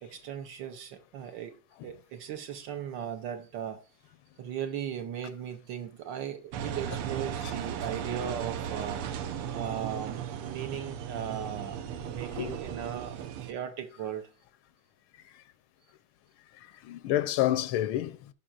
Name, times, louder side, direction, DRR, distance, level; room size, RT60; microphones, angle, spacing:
voice 1, 0.0-1.6 1.8-3.8 4.4-9.0 9.5-11.8 12.0-14.3, right 9 dB, 65° right, 1.4 m, -37 dB
Engine, 6.5-13.5, right 8 dB, 90° right, 1.7 m, -36 dB
voice 2, 16.6-18.3, left 13 dB, 80° left, 1.4 m, -29 dB
16.0 x 5.5 x 2.4 m
omnidirectional pair, 2.3 m